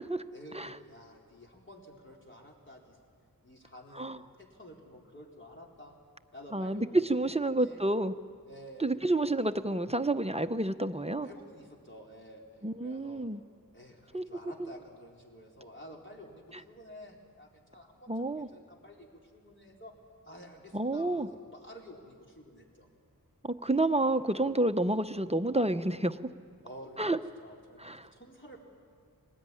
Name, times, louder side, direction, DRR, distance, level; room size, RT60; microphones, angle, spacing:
voice 1, 0.3-3.0 3.4-6.0 6.3-7.1 7.4-7.8 8.5-9.0 11.2-12.4 12.8-13.3 13.7-19.9 20.2-22.9 26.6-27.1 27.4-28.6, equal, 30° left, -1 dB, 4.4 m, -51 dB
voice 2, 6.5-8.1 8.8-11.3 12.6-13.4 14.1-14.2 14.6-14.7 18.1-18.5 20.7-21.3 23.4-26.2 27.0-27.2 27.8-28.1, right 2 dB, 15° right, 9 dB, 0.8 m, -29 dB
24.5 x 19.5 x 9.9 m, 2.1 s
wide cardioid pair, 60°, 36 cm